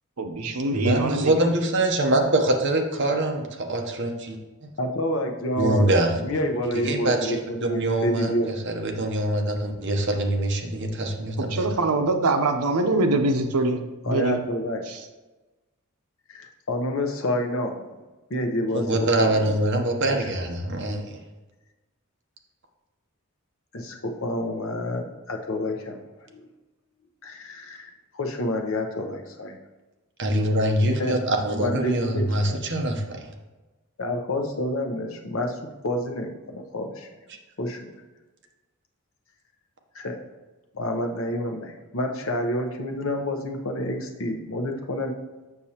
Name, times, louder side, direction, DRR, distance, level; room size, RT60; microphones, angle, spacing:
voice 1, 0.2-1.3 11.4-14.4 14.9-15.0, right 2 dB, 85° right, 6 dB, 0.7 m, -24 dB
voice 2, 0.7-4.4 5.6-6.2 6.7-8.3 8.7-11.7 18.7-21.1 30.2-33.3, right 1 dB, 55° right, 3 dB, 0.9 m, -24 dB
voice 3, 4.8-5.9 6.2-8.6 14.0-14.8 16.3-18.0 18.3-19.5 20.2-20.3 23.7-26.0 26.3-26.5 27.2-29.6 31.0-31.2 31.5-32.6 34.0-35.6 35.8-37.1 37.6-38.0 39.9-40.2 40.7-45.1, left 1 dB, 65° left, 4 dB, 0.8 m, -28 dB
6.8 x 6.2 x 2.9 m, 1.2 s
head